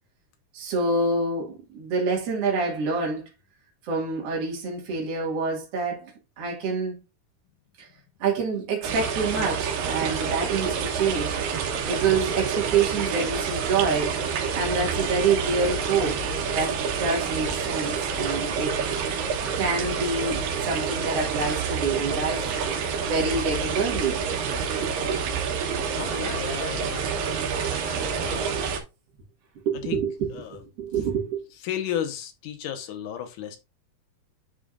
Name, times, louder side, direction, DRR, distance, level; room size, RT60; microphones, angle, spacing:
voice 1, 0.5-3.2 3.8-7.0 7.8-7.9 8.2-14.2 14.5-22.4 23.1-24.2 29.7-30.3 30.8-31.4, right 4 dB, 50° right, 2.7 m, -27 dB
sound 1, 8.8-28.8, right 6 dB, 80° right, 2.8 m, -28 dB
voice 2, 25.9-28.6 29.9-30.0 30.3-30.6 31.6-33.6, left 9 dB, 75° left, 2.4 m, -34 dB
9.1 x 5.0 x 2.5 m
omnidirectional pair, 3.9 m